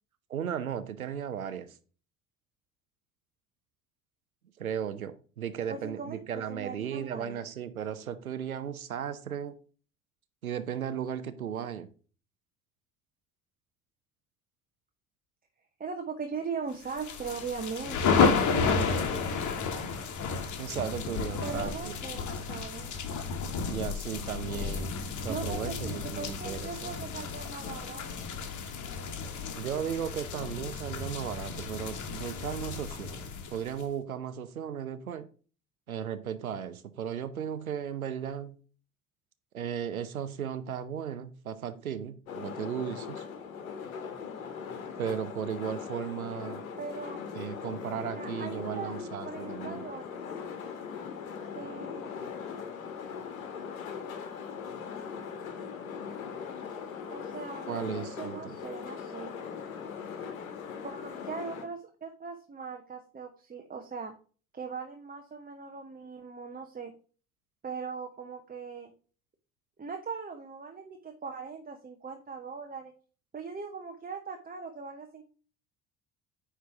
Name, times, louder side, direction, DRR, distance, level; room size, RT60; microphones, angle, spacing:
voice 1, 0.3-1.7 4.6-9.6 10.4-11.9 20.6-22.0 23.7-24.9 25.2-26.9 29.6-35.3 35.9-38.6 39.5-43.2 45.0-46.6 47.3-49.8 57.7-58.6, right 8 dB, 85° right, 12 dB, 0.8 m, -36 dB
voice 2, 5.7-7.4 15.8-18.1 21.4-22.9 25.3-28.0 46.8-47.2 48.2-48.9 49.2-50.2 51.5-52.1 57.1-59.3 60.8-64.1 64.5-66.9 67.6-68.9 69.8-72.9 73.3-75.2, right 5 dB, 20° right, 4 dB, 1.0 m, -40 dB
sound 1, 16.9-33.8, left 5 dB, 45° left, 1.6 m, -32 dB
sound 2, 42.3-61.6, left 6 dB, 75° left, 1.3 m, -40 dB
9.6 x 3.4 x 5.7 m, 0.39 s
figure-of-eight pair, 55°, 41 cm